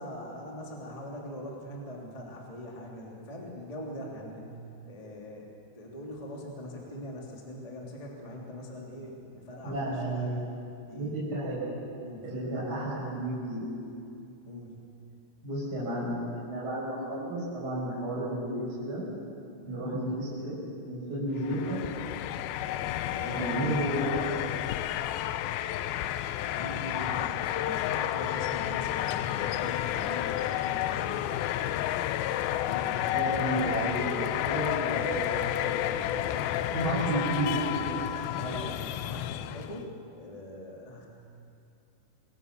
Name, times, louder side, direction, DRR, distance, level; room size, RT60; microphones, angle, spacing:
voice 1, 0.0-4.5 4.9-10.5 10.8-11.1 12.0-12.3 14.4-14.8 19.6-19.8 23.0-23.4 26.5-32.2 32.6-33.7 34.7-35.1 35.6-37.3 38.3-41.1, left 1 dB, 10° left, -2 dB, 2.6 m, -42 dB
voice 2, 9.6-10.6 10.9-11.7 12.2-13.7 15.4-19.0 19.7-21.8 23.3-24.2 33.1-35.3 36.3-38.1, right 1 dB, 20° right, -8 dB, 5.9 m, -32 dB
sound 1, 21.4-39.8, left 13 dB, 85° left, 2.1 m, -31 dB
27.5 x 22.5 x 7.0 m, 2.5 s
omnidirectional pair, 5.1 m